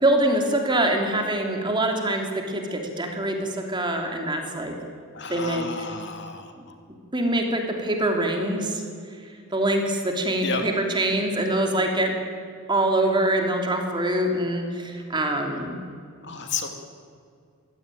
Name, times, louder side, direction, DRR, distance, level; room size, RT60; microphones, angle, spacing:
voice 1, 0.0-4.7 5.3-5.7 7.1-8.7 9.5-12.1 12.7-15.7, right 1 dB, 20° right, 2 dB, 3.1 m, -24 dB
voice 2, 5.1-6.5 10.4-10.6 16.2-16.7, left 5 dB, 55° left, 5 dB, 2.5 m, -31 dB
24.0 x 16.5 x 9.3 m, 2.3 s
head